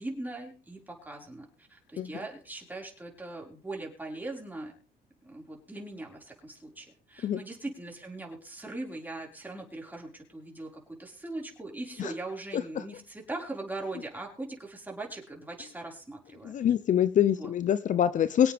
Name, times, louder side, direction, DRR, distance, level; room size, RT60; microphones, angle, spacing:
voice 1, 0.0-4.7 5.2-16.5 17.3-17.5, right 2 dB, 10° right, 5.4 m, -40 dB
voice 2, 12.5-12.8 16.4-18.5, left 10 dB, 50° left, 0.8 m, -25 dB
24.0 x 8.5 x 3.6 m
cardioid pair, 110°, 17 cm